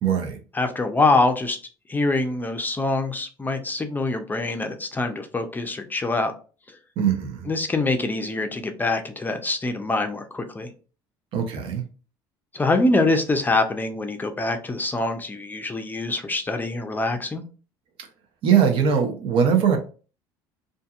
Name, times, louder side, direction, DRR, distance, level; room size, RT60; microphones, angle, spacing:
voice 1, 0.0-0.4 7.0-7.5 11.3-11.8 18.4-19.8, right 7 dB, 65° right, 4 dB, 0.7 m, -21 dB
voice 2, 0.5-1.6 1.9-6.3 6.7-6.8 7.5-10.7 12.5-17.4, left 2 dB, 20° left, 6 dB, 0.5 m, -24 dB
2.6 x 2.5 x 2.4 m, 0.36 s
supercardioid pair, 85°, 10 cm